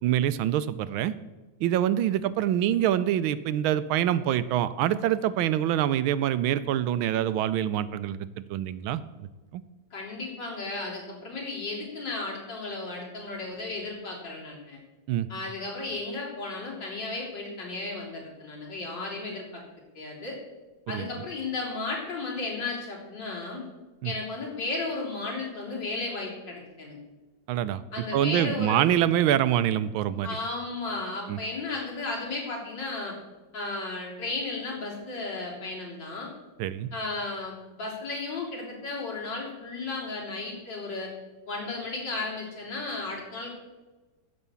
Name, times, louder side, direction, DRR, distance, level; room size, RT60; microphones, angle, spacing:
voice 1, 0.0-1.1 1.6-9.0 9.5-9.6 15.1-15.3 20.9-21.1 24.0-24.1 27.5-30.3 31.3-31.4 36.6-36.9, right 11 dB, 90° right, 14 dB, 1.4 m, -25 dB
voice 2, 9.9-14.8 15.3-19.6 20.0-20.4 20.9-23.7 24.0-27.0 27.9-28.9 30.2-33.2 33.5-36.3 36.9-41.1 41.5-43.5, left 3 dB, 60° left, -3 dB, 4.0 m, -34 dB
15.0 x 6.2 x 7.0 m, 1.2 s
omnidirectional pair, 2.2 m